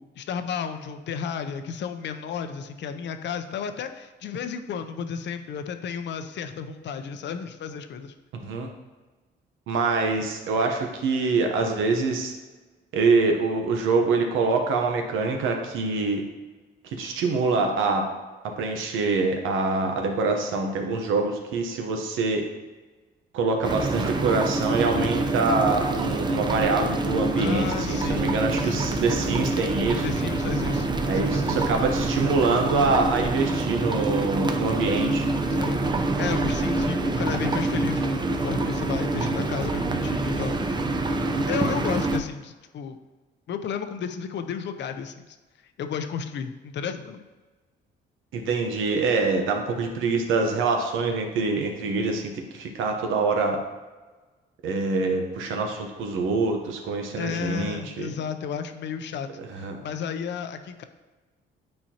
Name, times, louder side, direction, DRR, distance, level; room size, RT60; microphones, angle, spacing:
voice 1, 0.0-8.1 27.3-29.0 30.0-31.7 35.6-40.6 41.5-43.0 43.5-45.4 45.8-47.2 57.2-59.3 59.5-60.8, left 7 dB, 65° left, 8 dB, 0.6 m, -33 dB
voice 2, 8.3-8.7 9.7-12.3 12.9-16.2 17.0-18.1 18.4-22.4 23.3-30.0 31.1-35.3 48.3-53.6 54.6-58.1 59.4-59.8, right 3 dB, 90° right, 3 dB, 0.9 m, -25 dB
sound 1, 23.6-42.2, right 2 dB, 20° right, 0.6 m, -26 dB
8.6 x 4.3 x 2.8 m, 1.3 s
cardioid pair, 90°, 20 cm